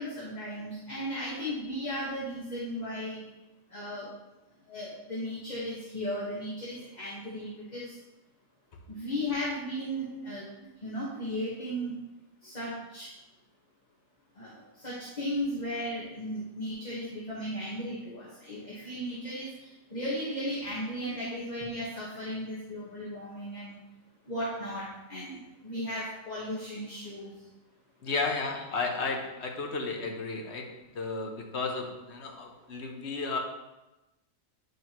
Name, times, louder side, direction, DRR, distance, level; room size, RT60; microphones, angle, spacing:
voice 1, 0.0-3.2 3.7-4.1 4.7-7.9 8.9-10.4 10.8-11.9 12.4-13.1 14.4-23.7 24.3-27.3, equal, 30° left, -7 dB, 1.5 m, -36 dB
voice 2, 28.0-33.4, left 4 dB, 55° left, 2 dB, 1.1 m, -33 dB
9.1 x 5.4 x 3.0 m, 1.0 s
omnidirectional pair, 1.4 m